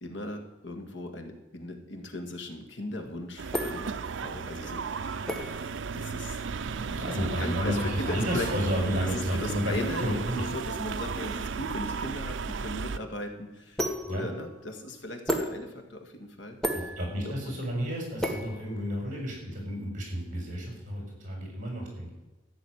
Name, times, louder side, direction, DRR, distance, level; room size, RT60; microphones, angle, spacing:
voice 1, 0.0-5.4 5.7-6.4 7.1-8.5 9.0-17.0 17.2-17.5, left 1 dB, 80° left, 5 dB, 2.0 m, -38 dB
sound 1, 2.9-19.3, equal, 5° left, 1.6 m, -37 dB
sound 2, 3.4-13.0, right 5 dB, 85° right, 0.5 m, -35 dB
voice 2, 6.6-10.5 14.1-14.3 16.7-22.1, equal, 45° right, 0 dB, 5.9 m, -32 dB
14.0 x 6.6 x 9.5 m, 1.1 s
head